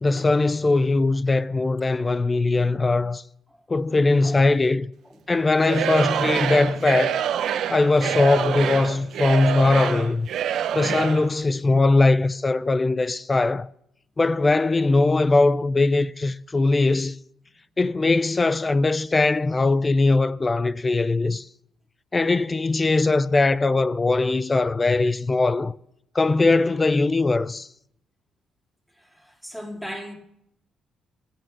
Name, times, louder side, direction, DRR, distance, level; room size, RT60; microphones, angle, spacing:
voice 1, 0.0-3.2 3.7-4.9 5.3-7.2 7.7-10.3 10.7-13.7 14.2-17.2 17.8-21.5 22.1-25.7 26.1-27.7, left 3 dB, 25° left, 0.5 m, -20 dB
Singing / Crowd, 5.6-11.3, right 9 dB, 75° right, 0.9 m, -26 dB
voice 2, 29.0-30.1, equal, 5° left, 4.3 m, -37 dB
14.0 x 8.5 x 7.3 m
cardioid pair, 90°, 0 cm